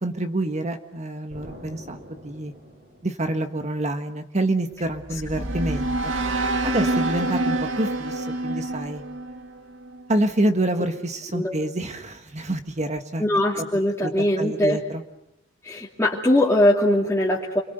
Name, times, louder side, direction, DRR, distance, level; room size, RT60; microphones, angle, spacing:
voice 1, 0.0-2.5 3.0-6.1 6.6-9.0 10.1-13.2 13.6-13.7 14.0-14.1 14.4-15.0, right 1 dB, 35° right, 7 dB, 1.5 m, -27 dB
Explosion, 1.3-4.0, equal, 55° right, 7.4 m, -45 dB
sound 1, 4.9-10.1, right 2 dB, 80° right, 2.2 m, -27 dB
voice 2, 13.2-14.8 15.6-17.6, left 1 dB, 15° left, -6 dB, 2.9 m, -21 dB
29.5 x 23.5 x 8.1 m, 0.86 s
head